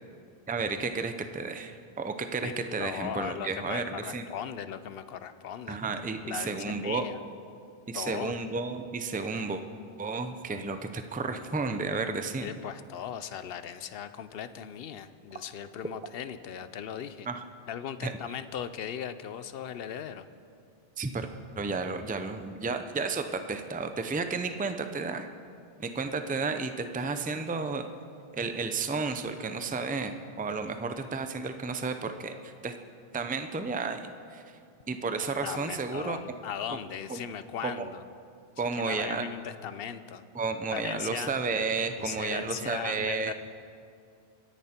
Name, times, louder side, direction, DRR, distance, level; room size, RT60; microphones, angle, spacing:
voice 1, 0.5-4.3 5.7-7.0 7.9-9.6 10.0-12.5 17.3-17.4 18.0-18.1 21.0-21.3 21.6-25.3 25.8-27.9 28.3-32.8 33.1-34.6 34.9-36.2 36.7-36.8 37.1-37.2 37.6-37.9 38.6-39.3 40.3-43.3, right 4 dB, 10° right, 8 dB, 0.5 m, -32 dB
voice 2, 2.4-5.8 6.2-7.2 7.9-8.3 12.4-17.3 17.7-20.3 35.2-38.0 38.8-40.2 40.7-41.3 41.9-43.3, left 8 dB, 70° left, 12 dB, 0.8 m, -38 dB
24.5 x 10.5 x 4.4 m, 2.4 s
omnidirectional pair, 1.1 m